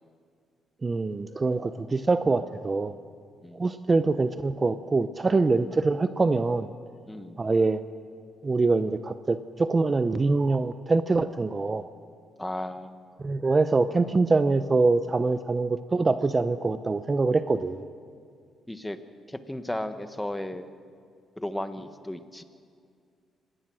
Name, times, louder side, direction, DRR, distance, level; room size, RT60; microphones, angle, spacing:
voice 1, 0.8-2.9 3.5-6.7 7.4-7.8 8.4-11.8 13.2-17.9, right 3 dB, 30° right, 11 dB, 0.7 m, -24 dB
voice 2, 7.1-7.4 12.4-13.0 18.7-19.0 19.3-20.7 21.4-22.4, left 1 dB, 10° left, 9 dB, 1.4 m, -34 dB
26.0 x 18.0 x 6.3 m, 2.3 s
cardioid pair, 90°, 0 cm